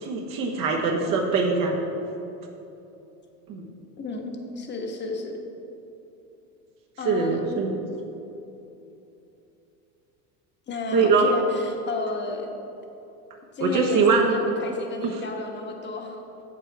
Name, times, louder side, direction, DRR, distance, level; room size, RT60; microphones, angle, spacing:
voice 1, 0.0-1.8 3.5-3.7 7.0-7.7 10.9-11.3 13.6-14.3 15.0-15.2, right 4 dB, 50° right, 0 dB, 1.2 m, -22 dB
voice 2, 4.0-5.4 7.0-7.6 10.7-12.5 13.5-16.2, left 3 dB, 25° left, 2 dB, 1.2 m, -32 dB
7.8 x 7.1 x 4.6 m, 2.9 s
supercardioid pair, 105°, 45 cm